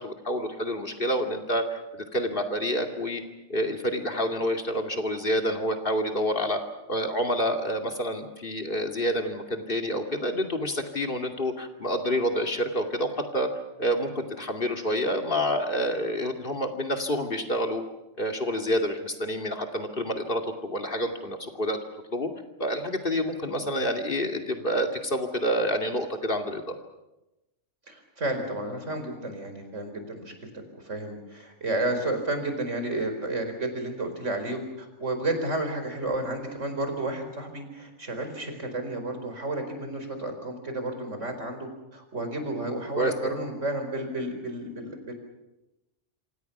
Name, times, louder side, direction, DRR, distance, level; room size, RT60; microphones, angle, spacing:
voice 1, 0.0-1.8 2.1-3.2 3.5-6.6 6.9-13.5 13.8-17.8 18.2-21.8 22.1-22.3 22.6-26.7 43.0-43.3, equal, 45° left, 4 dB, 2.6 m, -28 dB
voice 2, 27.9-45.1, right 2 dB, 75° right, 6 dB, 4.8 m, -32 dB
27.5 x 26.0 x 6.0 m, 0.97 s
omnidirectional pair, 1.3 m